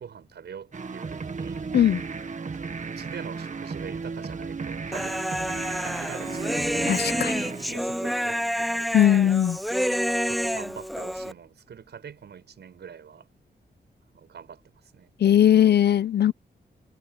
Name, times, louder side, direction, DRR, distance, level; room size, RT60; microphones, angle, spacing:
voice 1, 0.0-1.7 2.6-5.3 5.8-7.1 7.4-9.3 10.3-13.3 14.1-15.1, right 7 dB, 80° right, 6.4 m, -44 dB
sound 1, 0.7-8.4, right 4 dB, 45° right, 1.7 m, -35 dB
Human voice, 4.9-11.3, equal, ahead, 0.4 m, -28 dB
voice 2, 6.9-7.4 8.9-9.6 15.2-16.3, left 10 dB, 75° left, 0.8 m, -19 dB
cardioid pair, 80°, 17 cm